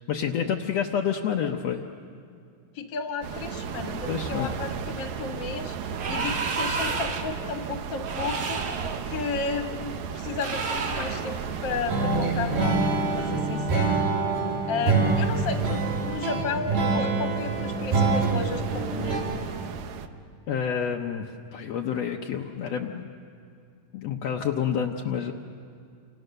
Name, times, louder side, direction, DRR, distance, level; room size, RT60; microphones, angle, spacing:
voice 1, 0.1-1.8 4.1-4.5 20.5-23.1 23.9-25.3, left 8 dB, 75° left, 1 dB, 1.5 m, -28 dB
voice 2, 2.7-12.8 13.1-14.0 14.7-19.5, left 4 dB, 45° left, 4 dB, 1.6 m, -33 dB
sound 1, 3.2-20.1, right 6 dB, 70° right, 1.8 m, -36 dB
sound 2, 5.9-7.4 8.0-9.0 10.4-11.3, right 4 dB, 55° right, 2.0 m, -31 dB
sound 3, 11.9-19.2, right 4 dB, 85° right, 5.2 m, -25 dB
29.0 x 28.0 x 6.7 m, 2.3 s
omnidirectional pair, 4.2 m